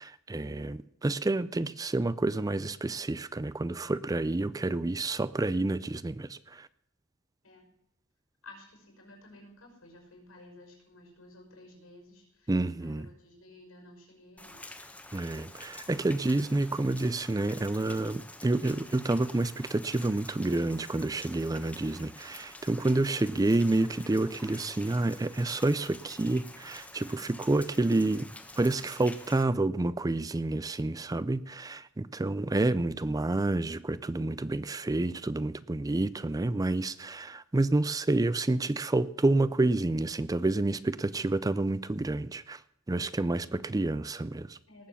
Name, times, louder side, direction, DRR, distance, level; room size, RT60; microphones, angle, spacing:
voice 1, 0.0-6.7 12.5-13.1 15.1-28.3 28.6-42.6 42.9-44.6, right 2 dB, 15° right, 0.4 m, -29 dB
voice 2, 8.4-14.6 44.7-44.9, left 2 dB, 80° left, 5.9 m, -53 dB
Rain, 14.4-29.4, left 2 dB, 5° left, 1.3 m, -48 dB
19.0 x 7.1 x 7.2 m
head